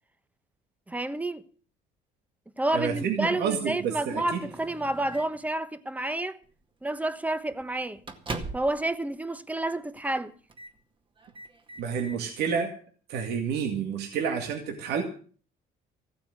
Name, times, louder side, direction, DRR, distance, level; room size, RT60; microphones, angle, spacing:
voice 1, 0.9-1.4 2.6-6.4 6.8-8.0 8.5-10.3, right 2 dB, 10° right, 1.1 m, -29 dB
voice 2, 2.7-4.2 11.8-12.7 13.1-15.0, right 7 dB, 80° right, 2.3 m, -29 dB
Microwave oven, 4.1-5.5 6.4-6.6 7.0-7.1 7.5-8.9 9.2-9.3 9.9-10.2 10.5-10.8 11.2-12.2, right 3 dB, 30° right, 2.1 m, -41 dB
15.0 x 9.1 x 7.7 m
cardioid pair, 110°, 17 cm